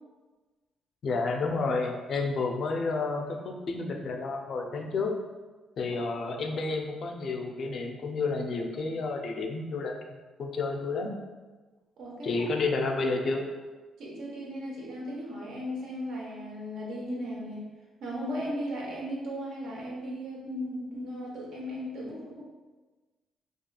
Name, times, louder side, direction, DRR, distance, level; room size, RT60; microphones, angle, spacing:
voice 1, 1.0-5.1 5.8-11.1 12.2-13.5, left 3 dB, 55° left, 2 dB, 0.3 m, -30 dB
voice 2, 12.0-12.5 14.0-17.7 18.0-22.4, equal, 75° right, -4 dB, 0.7 m, -36 dB
2.8 x 2.3 x 2.2 m, 1.3 s
cardioid pair, 90°, 0 cm